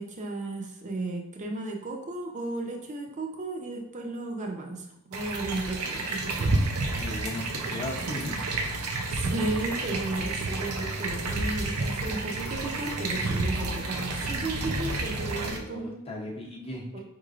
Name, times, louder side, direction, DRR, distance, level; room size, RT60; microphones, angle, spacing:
voice 1, 0.0-6.6 9.1-16.0 16.9-17.0, right 2 dB, 35° right, 1 dB, 0.6 m, -34 dB
sound 1, 5.1-15.6, right 2 dB, 90° right, 0.6 m, -30 dB
voice 2, 6.9-8.4 15.3-17.0, left 1 dB, 25° left, -2 dB, 0.8 m, -37 dB
5.1 x 3.1 x 2.5 m, 0.82 s
head